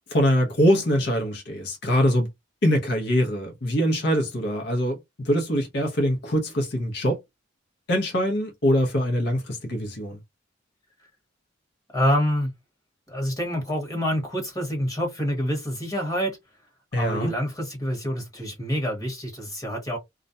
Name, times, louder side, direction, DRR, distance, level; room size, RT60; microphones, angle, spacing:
voice 1, 0.1-2.3 2.6-5.0 5.2-7.2 7.9-10.2 16.9-17.3, equal, 55° left, 0.7 m, -23 dB
voice 2, 11.9-12.5 13.1-16.4 16.9-20.0, equal, 20° left, 1.1 m, -27 dB
2.4 x 2.1 x 2.6 m
head